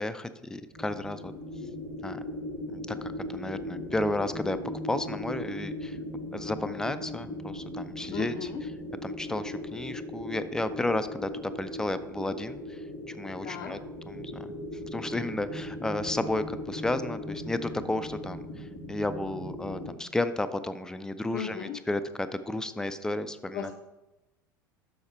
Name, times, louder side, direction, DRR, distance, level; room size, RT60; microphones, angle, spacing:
voice 1, 0.0-1.3 2.0-2.2 2.7-4.6 4.8-6.0 6.3-8.5 9.0-12.8 13.1-13.8 14.1-14.5 14.9-23.7, left 2 dB, 5° left, 11 dB, 0.4 m, -32 dB
sound 1, 0.7-19.9, left 1 dB, 50° right, 2.3 m, -38 dB
voice 2, 8.1-8.6 13.4-13.8 21.3-21.8 23.5-23.7, left 9 dB, 45° left, 1 dB, 0.6 m, -36 dB
7.1 x 6.5 x 4.2 m, 1.0 s
figure-of-eight pair, 75°, 11 cm